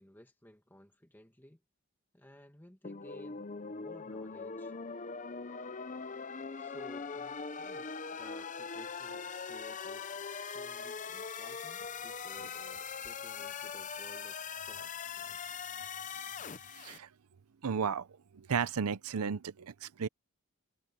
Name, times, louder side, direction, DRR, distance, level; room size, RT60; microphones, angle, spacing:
voice 1, 0.0-1.6 2.1-4.7 6.6-15.4, left 1 dB, 10° left, 1.6 m, -57 dB
sound 1, 2.8-17.0, left 5 dB, 35° left, 0.7 m, -41 dB
voice 2, 16.7-17.1 17.6-18.1 18.3-20.1, right 6 dB, 90° right, 0.6 m, -34 dB
head